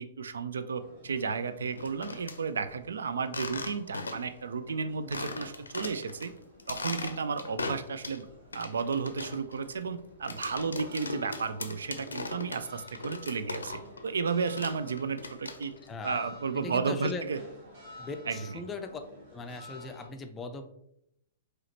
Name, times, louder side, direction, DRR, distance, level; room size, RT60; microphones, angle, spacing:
voice 1, 0.0-6.3 6.7-8.3 8.5-15.7 16.0-17.4 18.3-18.6, right 5 dB, 65° right, 10 dB, 0.3 m, -33 dB
sound 1, 0.8-20.1, left 1 dB, 50° right, 1.5 m, -53 dB
sound 2, 1.7-2.4 3.3-4.4 4.7-4.8 5.1-6.3 6.6-8.2 8.5-14.0 14.3-15.9, left 3 dB, 75° left, 0.5 m, -39 dB
voice 2, 15.8-16.3 16.6-17.2 18.0-19.0 19.3-20.7, left 3 dB, 15° left, 7 dB, 0.5 m, -39 dB
4.8 x 3.0 x 2.9 m, 0.77 s
figure-of-eight pair, 105°, 0 cm